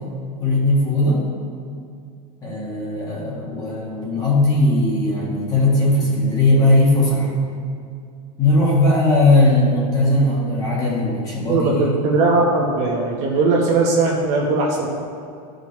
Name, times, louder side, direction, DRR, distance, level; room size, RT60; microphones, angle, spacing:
voice 1, 0.4-1.2 2.4-7.3 8.4-11.9, left 2 dB, 15° left, -5 dB, 1.7 m, -18 dB
voice 2, 11.4-14.9, right 3 dB, 35° right, -3 dB, 1.3 m, -19 dB
13.5 x 5.2 x 3.2 m, 2.4 s
supercardioid pair, 170°, 20 cm